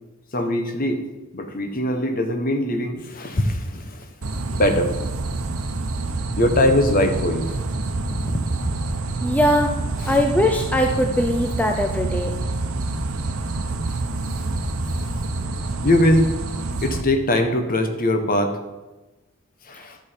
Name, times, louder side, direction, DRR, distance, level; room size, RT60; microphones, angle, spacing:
voice 1, 0.3-1.0 1.3-4.1 4.5-4.9 6.4-7.5 8.1-9.0 9.5-9.6 10.0-10.2 13.6-14.0 15.8-16.3 16.8-18.6 19.6-20.0, left 1 dB, 40° left, 7 dB, 1.1 m, -22 dB
sound 1, 4.2-17.0, right 2 dB, 85° right, 0.9 m, -27 dB
voice 2, 9.2-9.7 10.1-12.6 19.7-19.9, left 1 dB, 5° left, 3 dB, 0.5 m, -21 dB
12.0 x 7.1 x 5.1 m, 1.1 s
head